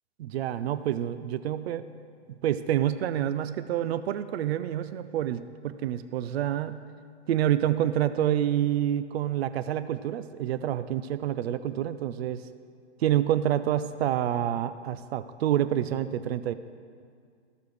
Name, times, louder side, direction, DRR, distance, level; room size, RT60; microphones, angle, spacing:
voice 1, 0.2-1.9 2.3-6.8 7.3-12.4 13.0-16.5, right 11 dB, 65° right, 13 dB, 0.5 m, -28 dB
14.5 x 6.7 x 3.2 m, 2.2 s
hypercardioid pair, 120°, 35 cm